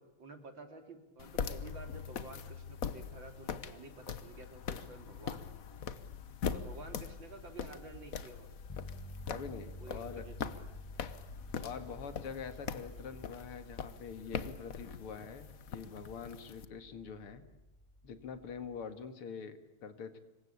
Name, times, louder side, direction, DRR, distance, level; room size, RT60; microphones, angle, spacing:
voice 1, 0.0-5.4 6.5-8.5 9.8-11.0, right 2 dB, 60° right, 5 dB, 3.8 m, -51 dB
sound 1, 1.2-16.7, left 6 dB, 50° left, 1.3 m, -42 dB
sound 2, 8.7-18.8, equal, 15° left, 0.8 m, -52 dB
voice 2, 9.3-10.2 11.6-15.5 15.7-17.4 18.0-20.2, left 6 dB, 90° left, 9 dB, 2.8 m, -44 dB
26.5 x 23.0 x 8.6 m, 0.91 s
omnidirectional pair, 2.4 m